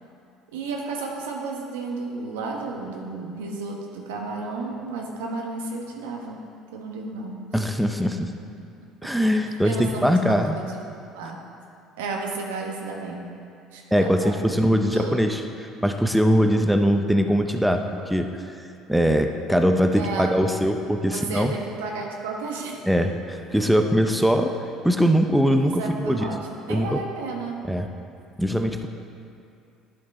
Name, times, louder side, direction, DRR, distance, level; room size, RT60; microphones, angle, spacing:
voice 1, 0.5-6.5 6.7-7.6 9.0-9.1 9.4-10.8 11.1-11.4 12.0-13.3 13.7-14.5 14.8-15.2 19.9-20.4 21.1-22.8 25.8-26.4 26.7-27.6, right 3 dB, 85° right, 0 dB, 1.0 m, -32 dB
voice 2, 7.5-8.3 9.0-10.6 13.9-15.4 15.8-18.4 18.9-21.5 22.9-24.6 24.8-26.3 26.7-27.0 27.7-27.9 28.4-28.9, equal, ahead, 5 dB, 0.6 m, -21 dB
11.0 x 5.2 x 4.2 m, 2.5 s
hypercardioid pair, 70°, 0 cm